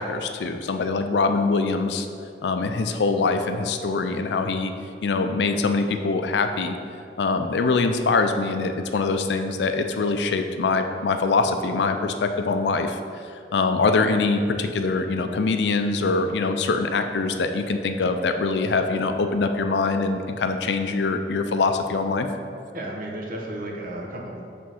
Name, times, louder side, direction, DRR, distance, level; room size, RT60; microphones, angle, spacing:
voice 1, 0.0-2.1 2.4-4.7 5.0-6.8 7.2-13.0 13.5-22.3, left 3 dB, 70° left, 7 dB, 0.4 m, -23 dB
voice 2, 22.7-24.4, right 1 dB, 55° right, -1 dB, 0.9 m, -33 dB
5.1 x 3.5 x 5.7 m, 2.4 s
head